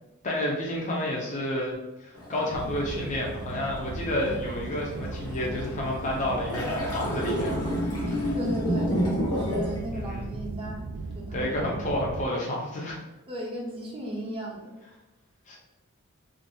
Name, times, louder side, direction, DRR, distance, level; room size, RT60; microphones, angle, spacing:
voice 1, 0.2-7.7 8.1-8.4 9.9-10.3 11.3-13.0 15.5-15.6, left 1 dB, 35° left, -2 dB, 0.5 m, -30 dB
sound 1, 2.2-9.8, equal, 80° left, 0.8 m, -31 dB
sound 2, 2.5-12.3, right 3 dB, 85° right, 0.3 m, -37 dB
voice 2, 8.3-8.9 9.3-10.8 11.1-11.5 13.3-14.7, equal, 25° right, -3 dB, 0.5 m, -36 dB
2.4 x 2.3 x 2.6 m, 1.0 s
head